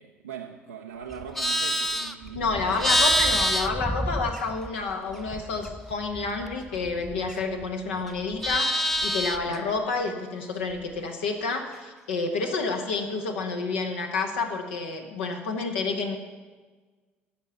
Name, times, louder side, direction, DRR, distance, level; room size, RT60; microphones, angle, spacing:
voice 1, 0.0-2.9 9.4-9.7, right 7 dB, 85° right, 0 dB, 0.5 m, -41 dB
Livestock farm animals working animals, 1.1-4.8 5.1-7.7 8.0-9.6, equal, 5° left, 0.7 m, -27 dB
voice 2, 2.3-16.2, left 4 dB, 75° left, 4 dB, 1.3 m, -29 dB
14.0 x 5.4 x 8.0 m, 1.4 s
figure-of-eight pair, 55°, 6 cm